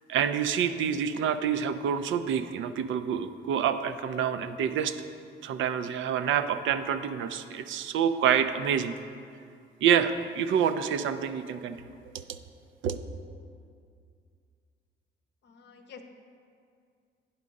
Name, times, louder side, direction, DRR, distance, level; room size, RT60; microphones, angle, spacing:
voice 1, 0.1-5.0 5.4-9.0 9.8-11.8 12.1-12.2 12.8-13.0, right 8 dB, 75° right, 10 dB, 0.4 m, -27 dB
voice 2, 15.4-16.0, left 6 dB, 60° left, 5 dB, 0.7 m, -49 dB
9.6 x 3.7 x 5.2 m, 2.3 s
cardioid pair, 90°, 20 cm